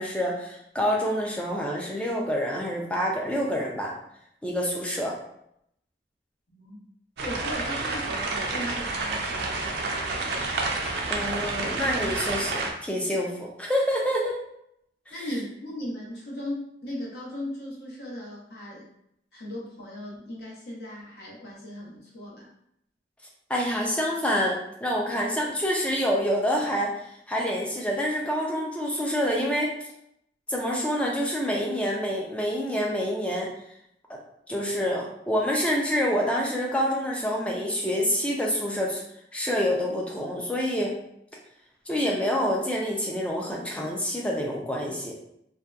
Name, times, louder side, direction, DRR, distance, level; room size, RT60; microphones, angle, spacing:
voice 1, 0.0-3.9 4.4-5.2 11.1-14.4 15.1-15.3 23.5-26.9 27.3-29.7 30.5-33.5 34.1-34.2 34.5-39.0 39.3-40.9 41.9-45.1, equal, 5° left, -2 dB, 0.3 m, -27 dB
voice 2, 6.5-6.8 7.2-10.4 15.1-18.8 19.3-22.5, left 1 dB, 70° left, -5 dB, 0.9 m, -37 dB
sound 1, 7.2-12.7, right 3 dB, 70° right, 0.4 m, -29 dB
2.7 x 2.1 x 2.3 m, 0.74 s
head